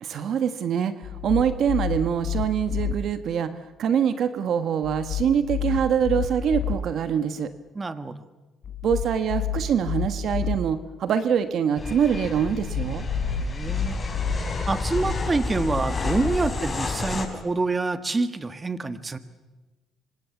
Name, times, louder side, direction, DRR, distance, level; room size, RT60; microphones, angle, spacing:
voice 1, 0.0-0.9 1.2-7.5 8.8-13.0, right 8 dB, 60° right, 10 dB, 1.4 m, -24 dB
sound 1, 1.0-2.9 4.8-6.7 8.6-10.6 12.4-16.3, left 7 dB, 55° left, 3.8 m, -30 dB
voice 2, 7.8-8.2 13.4-14.0 14.7-19.2, right 3 dB, 25° right, 10 dB, 1.7 m, -27 dB
sound 2, 11.8-17.3, left 3 dB, 30° left, 5.1 m, -31 dB
26.0 x 26.0 x 7.2 m, 1.2 s
supercardioid pair, 80°, 0 cm